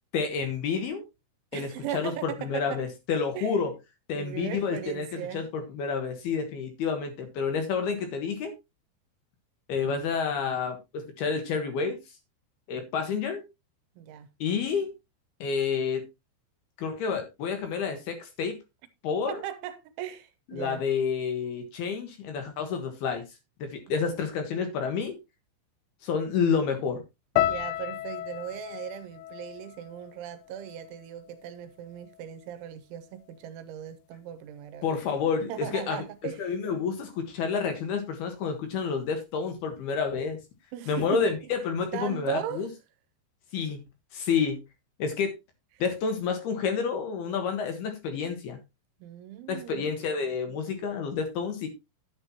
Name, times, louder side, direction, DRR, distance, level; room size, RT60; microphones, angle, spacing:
voice 1, 0.1-1.0 1.5-3.7 4.1-5.1 5.3-8.5 9.7-12.0 12.7-13.4 14.4-14.9 15.4-16.0 16.8-18.6 19.0-19.3 20.5-23.2 23.6-25.2 26.0-27.0 34.8-36.0 36.4-40.4 40.9-42.7 43.5-43.8 44.1-44.6 45.0-45.3 45.8-48.6 49.5-51.7, left 5 dB, 65° left, 2.9 m, -29 dB
voice 2, 1.5-2.8 3.3-3.5 4.1-5.5 14.0-14.3 19.3-20.8 23.9-24.0 27.4-35.0 35.4-36.5 40.7-41.5 41.9-42.7 49.0-49.8 50.5-50.6, right 11 dB, 80° right, 3.1 m, -38 dB
sound 1, 27.4-31.6 31.8-32.6 33.2-33.4, left 13 dB, 85° left, 3.3 m, -34 dB
9.9 x 9.9 x 3.0 m
omnidirectional pair, 5.7 m